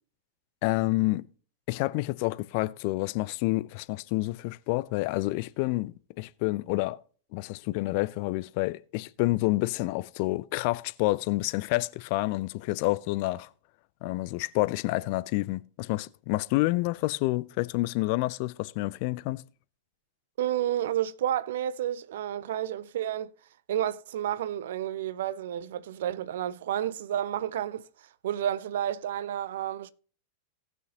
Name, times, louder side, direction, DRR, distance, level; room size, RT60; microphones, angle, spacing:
voice 1, 0.6-1.3 1.7-7.0 7.3-13.5 14.0-19.4, left 20 dB, 45° left, 0.4 m, -28 dB
voice 2, 20.4-23.3 23.7-29.9, right 11 dB, 60° right, 0.5 m, -31 dB
18.0 x 6.2 x 2.9 m
figure-of-eight pair, 90°, 0 cm